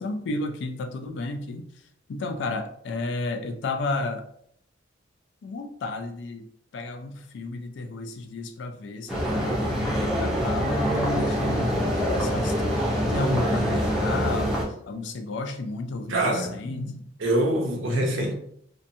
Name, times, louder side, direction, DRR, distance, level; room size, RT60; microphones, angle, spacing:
voice 1, 0.0-1.6 2.1-4.3 5.4-6.5 6.7-14.6 14.9-17.1 17.8-18.3, left 2 dB, 65° left, 7 dB, 0.3 m, -32 dB
sound 1, 9.1-14.6, equal, ahead, 0.5 m, -25 dB
voice 2, 16.1-16.6 17.2-18.3, right 1 dB, 80° right, 2 dB, 0.6 m, -24 dB
2.7 x 2.2 x 2.6 m, 0.68 s
head